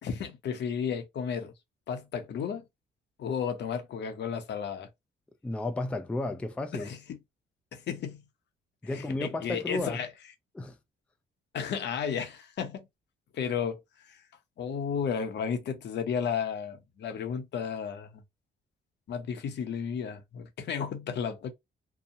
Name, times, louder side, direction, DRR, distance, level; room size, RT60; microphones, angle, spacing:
voice 1, 0.0-1.5 1.9-2.6 3.2-4.9 6.7-7.2 7.7-8.2 8.8-10.1 11.5-12.8 13.3-14.2 14.6-18.2 19.1-21.5, left 7 dB, 60° left, 0.7 m, -33 dB
voice 2, 5.4-6.9 8.8-10.0 10.5-10.8, left 2 dB, 5° left, 0.3 m, -33 dB
2.8 x 2.1 x 2.6 m
cardioid pair, 90°, 20 cm